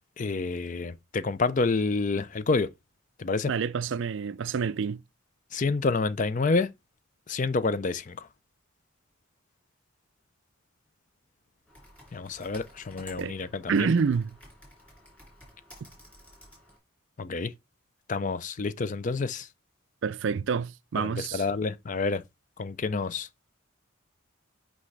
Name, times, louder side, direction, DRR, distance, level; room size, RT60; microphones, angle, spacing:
voice 1, 0.2-2.7 3.2-3.5 5.5-6.7 7.3-8.3 12.1-13.9 17.2-17.5 18.1-19.5 21.0-22.2 22.6-23.3, left 3 dB, 35° left, 0.4 m, -28 dB
voice 2, 3.5-5.0 13.2-13.4 13.7-14.4 20.0-21.5, right 5 dB, 60° right, 0.4 m, -28 dB
Computer keyboard, 11.7-16.8, equal, 5° left, 2.8 m, -52 dB
6.0 x 5.3 x 3.2 m
head